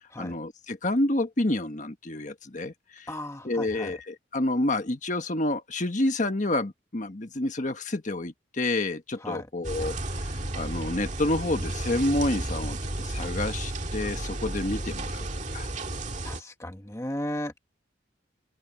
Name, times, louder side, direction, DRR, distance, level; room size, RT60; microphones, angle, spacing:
voice 1, 0.2-3.1 3.4-15.7, left 1 dB, 40° left, 1.4 m, -29 dB
voice 2, 3.1-4.0 9.2-9.5 16.2-17.5, left 1 dB, 15° left, 1.3 m, -35 dB
sound 1, 9.6-16.4, right 1 dB, 40° right, 2.0 m, -33 dB
open air
head